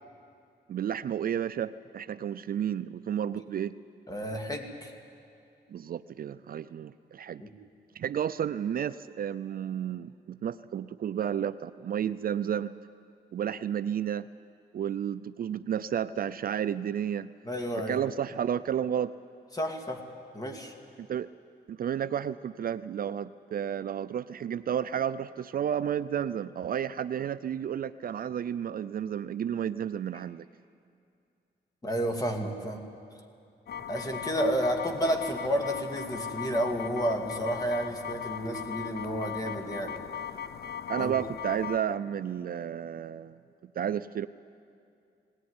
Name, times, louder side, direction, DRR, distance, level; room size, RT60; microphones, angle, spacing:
voice 1, 0.7-3.7 5.7-7.4 7.9-12.7 13.3-14.3 14.7-17.3 17.9-19.1 21.0-21.3 21.7-30.4 40.9-43.4 43.8-44.3, right 9 dB, 55° right, 13 dB, 0.4 m, -32 dB
voice 2, 4.1-4.9 7.4-7.5 17.5-18.0 19.5-20.0 20.3-20.7 31.8-32.8 33.9-40.0 41.0-41.1, equal, 20° left, 3 dB, 2.3 m, -31 dB
sound 1, 33.7-41.8, left 8 dB, 60° left, 0.7 m, -38 dB
19.0 x 18.0 x 9.7 m, 2.5 s
wide cardioid pair, 120°, 18 cm